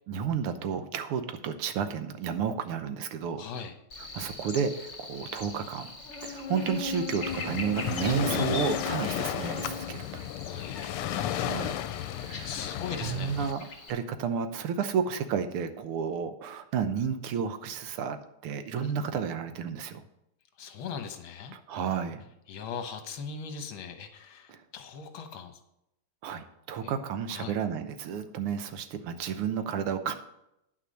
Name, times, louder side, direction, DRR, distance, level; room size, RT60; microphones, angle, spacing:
voice 1, 0.1-3.4 4.1-5.9 6.2-10.3 11.1-11.8 12.2-12.6 13.0-20.0 21.5-22.2 24.5-24.6 26.2-30.1, right 7 dB, 90° right, 9 dB, 1.8 m, -32 dB
voice 2, 3.4-3.7 10.5-13.5 18.7-18.9 20.6-21.6 22.5-25.6 26.8-26.9 27.3-27.5, left 6 dB, 70° left, 7 dB, 1.8 m, -40 dB
Buzz, 3.9-13.9, left 3 dB, 35° left, 1.8 m, -39 dB
Waves surf, 7.2-13.5, left 11 dB, 85° left, 1.5 m, -33 dB
9.9 x 6.1 x 6.4 m, 0.83 s
omnidirectional pair, 2.4 m